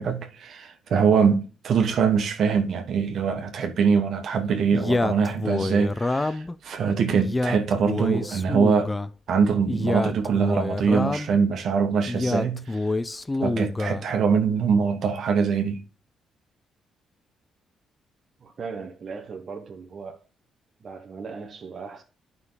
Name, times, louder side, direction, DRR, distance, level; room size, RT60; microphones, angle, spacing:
voice 1, 0.0-8.9 9.3-12.9 13.4-15.8, right 6 dB, 65° right, 1.5 m, -23 dB
Male speech man speaking, 4.7-6.5 7.1-9.1 9.7-11.4 12.1-14.1, left 2 dB, 15° left, 0.5 m, -27 dB
voice 2, 18.4-20.2 20.8-22.0, right 5 dB, 50° right, 1.2 m, -38 dB
9.4 x 5.7 x 4.0 m
cardioid pair, 90°, 0 cm